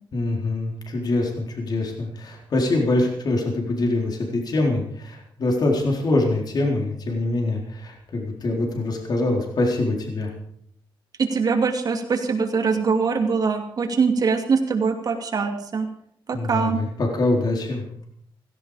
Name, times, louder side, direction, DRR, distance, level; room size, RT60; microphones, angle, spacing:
voice 1, 0.1-10.3 16.3-17.8, left 2 dB, 50° left, 1 dB, 4.1 m, -24 dB
voice 2, 11.2-15.9 16.3-16.8, right 5 dB, 45° right, 4 dB, 2.7 m, -22 dB
16.5 x 16.5 x 5.0 m, 0.65 s
wide cardioid pair, 135°, 9 cm